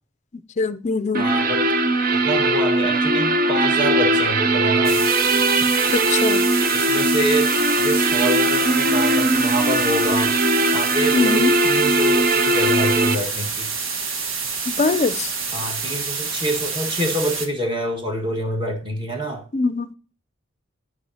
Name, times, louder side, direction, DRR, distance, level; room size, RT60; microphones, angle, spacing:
voice 1, 0.6-1.3 5.9-6.4 11.1-11.5 14.7-15.3 19.5-19.9, left 3 dB, 35° left, 0.4 m, -22 dB
sound 1, 1.1-13.1, right 2 dB, 45° right, 0.6 m, -19 dB
voice 2, 1.2-1.6 2.1-5.0 6.7-7.5 7.8-10.3 10.7-13.7 15.5-19.4, equal, 25° right, 1.7 m, -26 dB
sound 2, 4.8-17.5, right 5 dB, 80° right, 1.4 m, -28 dB
11.5 x 6.2 x 2.8 m
head